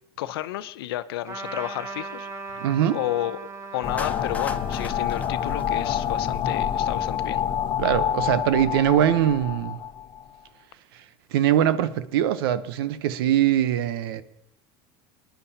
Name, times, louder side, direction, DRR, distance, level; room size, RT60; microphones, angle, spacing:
voice 1, 0.2-2.3 2.9-3.4 3.7-7.4, left 14 dB, 90° left, 0.6 m, -31 dB
Trumpet, 1.3-7.1, right 3 dB, 25° right, 1.3 m, -39 dB
voice 2, 2.6-3.0 7.8-9.8 10.9-11.0 11.3-14.2, right 11 dB, 85° right, 0.8 m, -22 dB
sound 1, 3.8-10.2, left 9 dB, 45° left, 0.9 m, -27 dB
Clapping, 4.0-6.4, left 3 dB, 10° left, 0.9 m, -38 dB
26.0 x 10.5 x 2.8 m
supercardioid pair, 110°, 12 cm